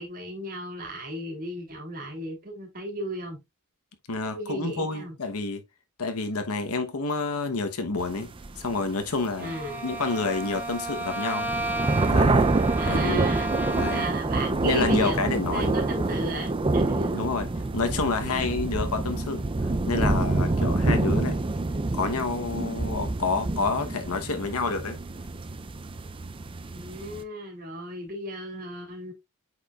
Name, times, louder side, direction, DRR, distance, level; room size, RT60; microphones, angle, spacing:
voice 1, 0.0-3.4 4.3-5.1 9.4-9.8 12.8-17.2 18.3-18.5 26.7-29.1, equal, 40° right, 3.0 m, -35 dB
voice 2, 4.1-5.6 6.0-8.3 8.6-9.5 9.8-11.5 12.1-12.5 12.9-13.2 13.7-14.1 14.6-15.8 17.1-17.5 17.7-21.4 21.9-25.0, left 3 dB, 75° left, 1.1 m, -29 dB
sound 1, 8.0-27.2, right 2 dB, 25° right, 0.5 m, -27 dB
Bowed string instrument, 9.4-14.4, right 2 dB, 10° right, 1.1 m, -33 dB
8.4 x 4.9 x 2.4 m
head